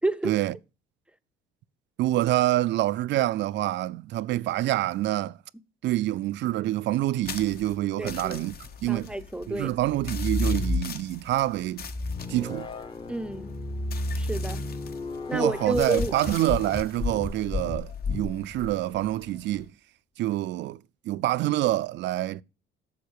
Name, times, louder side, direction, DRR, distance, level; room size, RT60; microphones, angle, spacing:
voice 1, 0.0-0.4 8.0-8.4 8.9-9.8 13.1-13.5 14.1-14.6 15.3-16.1, right 2 dB, 5° right, 0.6 m, -29 dB
voice 2, 2.0-5.4 5.8-8.5 8.8-9.1 9.5-11.9 12.3-12.7 15.3-19.7 20.2-20.8 21.1-22.4, right 15 dB, 65° right, 0.4 m, -26 dB
sound 1, 7.2-19.7, left 7 dB, 50° left, 1.1 m, -44 dB
sound 2, 9.9-11.3 11.8-18.7, left 2 dB, 25° left, 0.9 m, -31 dB
7.3 x 7.2 x 4.5 m
cardioid pair, 115°, 20 cm